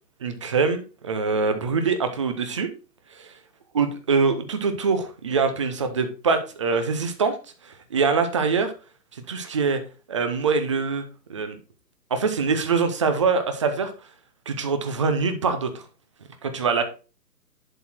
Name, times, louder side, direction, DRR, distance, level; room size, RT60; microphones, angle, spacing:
voice 1, 0.2-2.7 3.2-3.3 3.7-7.4 7.9-8.7 9.3-9.8 10.1-11.0 11.3-11.6 12.1-13.9 14.5-15.8 16.4-16.8, right 5 dB, 20° right, 9 dB, 0.7 m, -24 dB
11.0 x 4.3 x 4.4 m, 0.33 s
hypercardioid pair, 150°, 50 cm